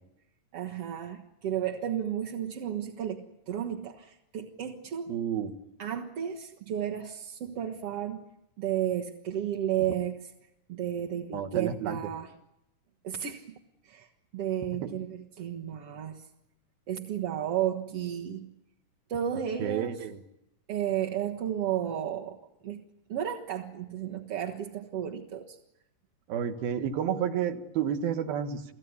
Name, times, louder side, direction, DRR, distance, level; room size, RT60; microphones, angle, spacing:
voice 1, 0.5-5.1 5.8-8.2 8.6-10.3 10.7-12.3 13.0-13.6 13.8-14.1 14.3-16.2 16.9-18.5 19.1-20.0 20.7-22.4 22.6-22.8 23.1-25.6, right 10 dB, 55° right, 0 dB, 1.9 m, -33 dB
voice 2, 5.1-5.5 11.3-12.0 14.8-14.9 19.6-20.2 26.3-28.7, right 8 dB, 85° right, 7 dB, 3.4 m, -30 dB
30.0 x 17.5 x 9.6 m, 0.85 s
omnidirectional pair, 4.1 m